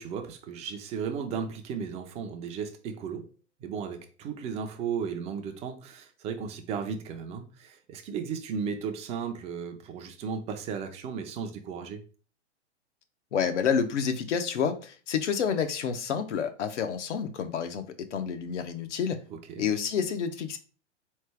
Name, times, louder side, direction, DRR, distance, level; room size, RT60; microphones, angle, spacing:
voice 1, 0.0-3.3 3.6-12.0 19.3-19.7, right 6 dB, 20° right, 0.4 m, -35 dB
voice 2, 13.3-19.2 19.6-20.6, left 7 dB, 75° left, 0.8 m, -29 dB
3.8 x 3.2 x 3.4 m
hypercardioid pair, 125°, 36 cm